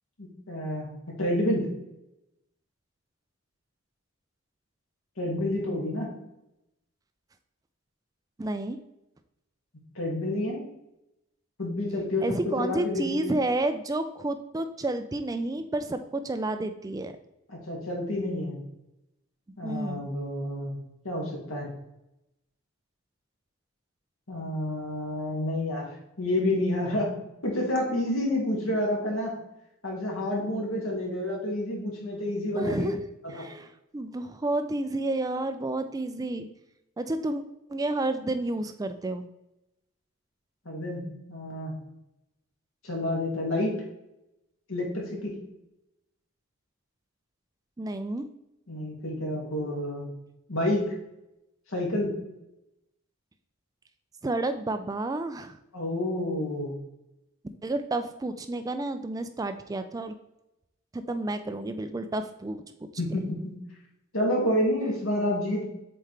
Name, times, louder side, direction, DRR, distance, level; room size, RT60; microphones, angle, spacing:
voice 1, 0.2-0.9 1.2-1.7 5.2-6.1 10.0-10.6 11.6-13.3 17.5-18.6 19.6-20.7 21.0-21.7 24.3-25.9 26.2-27.1 27.4-29.3 29.8-32.9 33.3-33.5 40.7-41.8 42.8-43.7 44.7-45.3 48.7-50.1 50.5-50.9 51.7-52.1 55.7-56.8 63.0-63.5 64.1-65.6, left 1 dB, 75° left, -1 dB, 2.2 m, -29 dB
voice 2, 8.4-8.8 12.2-17.1 19.6-20.1 32.5-33.0 33.3-36.5 37.0-37.4 37.7-39.2 47.8-48.3 54.2-55.6 57.6-60.1 60.9-62.6 64.4-64.5, right 2 dB, 15° right, 9 dB, 0.3 m, -30 dB
7.4 x 4.3 x 3.3 m, 0.89 s
head